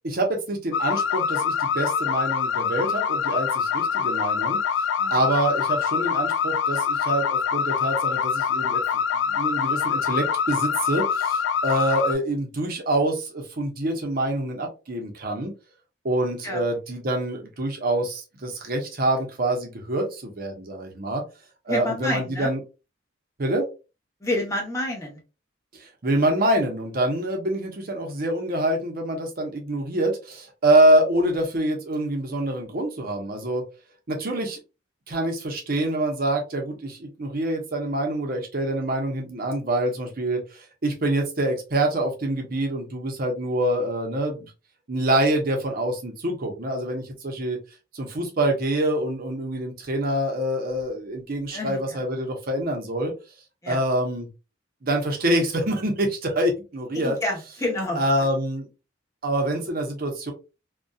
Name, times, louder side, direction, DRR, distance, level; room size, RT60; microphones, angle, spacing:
voice 1, 0.0-4.6 5.1-8.8 9.1-15.5 16.0-21.2 21.7-22.6 23.4-23.7 25.7-33.6 34.1-34.6 35.1-44.5 44.9-47.6 47.9-53.1 53.7-54.3 54.8-57.2 58.0-58.7 59.2-60.3, right 1 dB, 50° right, 3 dB, 0.7 m, -25 dB
sound 1, 0.7-12.1, left 7 dB, 70° left, 0.3 m, -25 dB
voice 2, 5.0-5.3 16.4-16.6 21.7-22.5 24.2-25.2 51.5-52.0 53.6-53.8 56.9-58.1, left 1 dB, 15° left, -1 dB, 0.8 m, -29 dB
2.6 x 2.2 x 2.2 m, 0.30 s
head